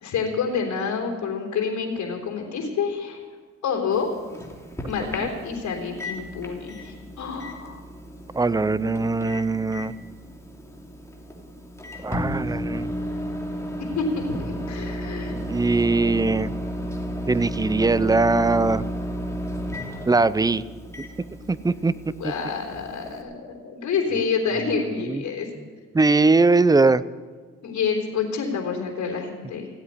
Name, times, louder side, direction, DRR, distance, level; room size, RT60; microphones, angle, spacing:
voice 1, 0.0-3.2 3.6-4.1 4.9-7.8 13.8-15.4 22.2-25.5 27.6-29.7, left 5 dB, 70° left, 1 dB, 3.5 m, -28 dB
Microwave oven, 3.9-23.2, equal, 10° left, 2.8 m, -33 dB
voice 2, 8.3-9.9 12.0-12.9 15.3-16.5 17.3-18.8 20.1-20.6 21.5-22.1 25.0-25.2 25.9-27.0, right 3 dB, 15° right, 17 dB, 0.5 m, -21 dB
16.5 x 8.2 x 10.0 m, 1.5 s
cardioid pair, 90°, 30 cm